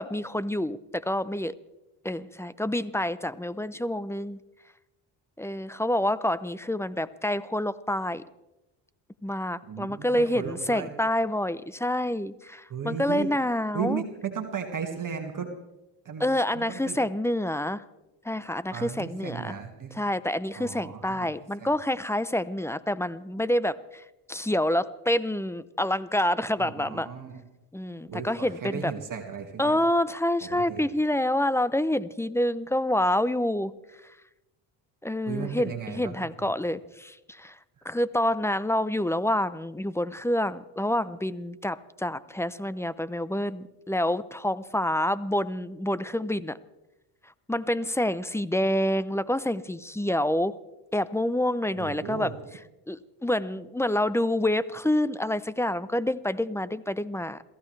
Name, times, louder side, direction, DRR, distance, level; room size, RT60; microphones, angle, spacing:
voice 1, 0.0-1.5 2.0-4.4 5.4-8.2 9.2-14.0 16.2-17.8 18.2-19.6 19.9-27.1 27.7-28.9 29.6-33.7 34.0-34.1 35.0-37.6 37.8-46.6 47.5-50.6 50.9-52.3 52.9-57.4, left 1 dB, 5° left, 17 dB, 0.6 m, -27 dB
voice 2, 9.7-10.9 12.7-13.3 13.7-15.5 16.0-16.3 16.5-17.0 18.7-20.0 20.5-21.3 21.6-21.7 26.6-27.4 28.1-29.8 30.4-30.8 35.3-36.3 37.8-37.9 51.7-52.3, right 6 dB, 40° right, 4 dB, 2.1 m, -35 dB
27.5 x 15.0 x 3.3 m, 0.98 s
supercardioid pair, 80°, 49 cm